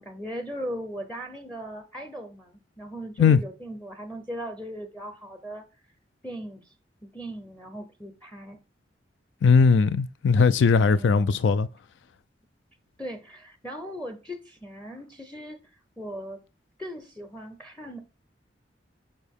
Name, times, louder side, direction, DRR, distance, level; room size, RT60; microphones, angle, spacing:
voice 1, 0.0-5.6 6.2-6.7 7.0-8.6 10.9-11.4 13.0-15.6 16.0-16.4 16.8-18.0, equal, 5° left, 0.6 m, -38 dB
voice 2, 9.4-11.7, left 5 dB, 80° left, 0.3 m, -19 dB
6.4 x 4.4 x 3.5 m
head